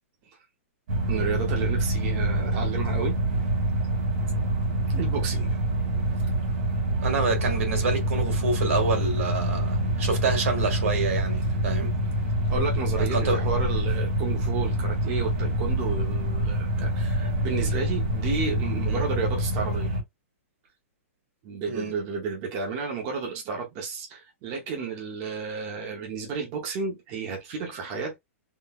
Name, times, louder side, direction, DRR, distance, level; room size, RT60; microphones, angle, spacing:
sound 1, 0.9-20.0, right 1 dB, 45° right, 1.9 m, -26 dB
voice 1, 1.1-3.2 4.9-5.6 12.5-19.9 21.4-28.2, right 5 dB, 30° right, 0.7 m, -32 dB
voice 2, 7.0-11.9 13.0-13.4 18.9-19.0 21.7-21.9, right 4 dB, 75° right, 1.6 m, -27 dB
3.7 x 2.2 x 2.3 m
hypercardioid pair, 165°, 8 cm